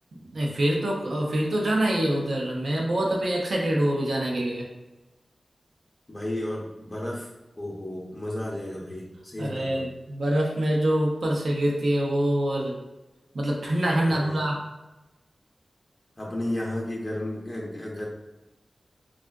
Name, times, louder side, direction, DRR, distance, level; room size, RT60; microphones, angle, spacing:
voice 1, 0.2-4.7 9.4-12.7 13.3-14.6, right 1 dB, 80° right, -2 dB, 0.6 m, -25 dB
voice 2, 6.1-7.3 7.6-9.9 14.0-14.4 16.2-18.1, left 1 dB, 35° left, -4 dB, 0.6 m, -33 dB
3.5 x 2.4 x 2.3 m, 1.0 s
wide cardioid pair, 70°, 0 cm